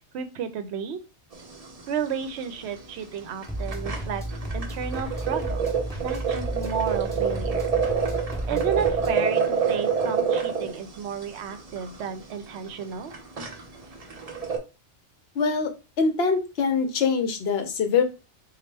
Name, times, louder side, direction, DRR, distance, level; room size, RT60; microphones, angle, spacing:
voice 1, 0.1-1.0 1.9-5.7 6.0-7.7 8.5-13.1, right 7 dB, 70° right, 10 dB, 0.8 m, -32 dB
sound 1, 1.3-1.8 2.1-2.2 2.4-2.6 3.1-3.2 3.4-14.6, right 6 dB, 40° right, 0.6 m, -27 dB
sound 2, 3.5-9.1, equal, 5° left, 0.6 m, -33 dB
voice 2, 15.4-15.7 16.0-18.0, left 5 dB, 60° left, 7 dB, 0.9 m, -23 dB
4.1 x 2.4 x 3.3 m, 0.30 s
omnidirectional pair, 1.2 m